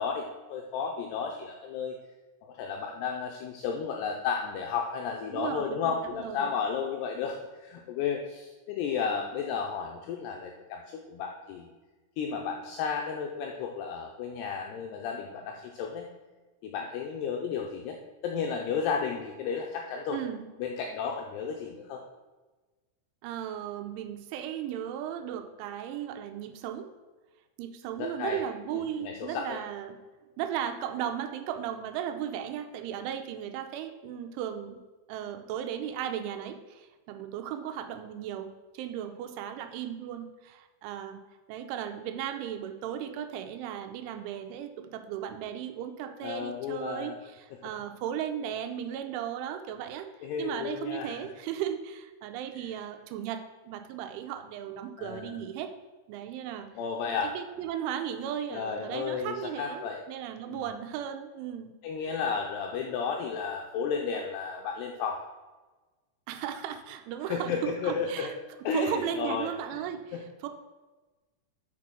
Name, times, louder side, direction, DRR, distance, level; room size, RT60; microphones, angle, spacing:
voice 1, 0.0-2.0 2.4-11.7 12.2-16.1 16.6-18.0 18.2-20.2 20.6-22.0 28.0-28.4 28.7-29.6 46.2-47.2 50.2-51.2 55.0-55.4 56.8-57.3 58.5-60.0 60.5-60.6 61.8-65.2 67.3-68.3 68.6-69.5 70.1-70.2, left 6 dB, 85° left, 1 dB, 2.4 m, -33 dB
voice 2, 5.3-6.5 20.1-20.4 23.2-26.9 27.6-30.0 30.4-34.8 35.1-38.5 38.7-41.2 41.5-50.1 50.4-55.7 56.1-56.7 57.3-61.7 62.0-62.2 66.3-68.3 68.7-70.5, right 9 dB, 85° right, 7 dB, 3.1 m, -36 dB
6.5 x 6.1 x 6.0 m, 1.2 s
omnidirectional pair, 5.5 m